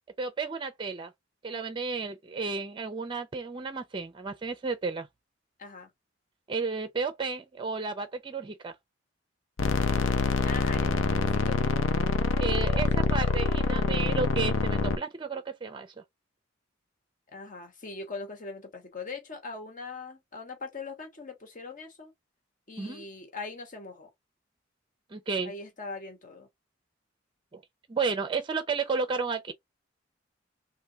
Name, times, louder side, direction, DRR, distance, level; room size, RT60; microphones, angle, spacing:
voice 1, 0.2-1.1 1.4-5.1 6.5-8.7 12.4-15.9 22.8-23.1 25.1-25.5 27.5-27.6 27.9-29.5, right 4 dB, 25° right, 0.5 m, -32 dB
voice 2, 5.6-5.9 10.4-11.8 17.3-22.1 22.7-24.1 25.4-26.5, left 4 dB, 45° left, 1.3 m, -41 dB
sound 1, 9.6-15.0, left 3 dB, 80° left, 0.6 m, -26 dB
3.6 x 2.6 x 2.8 m
head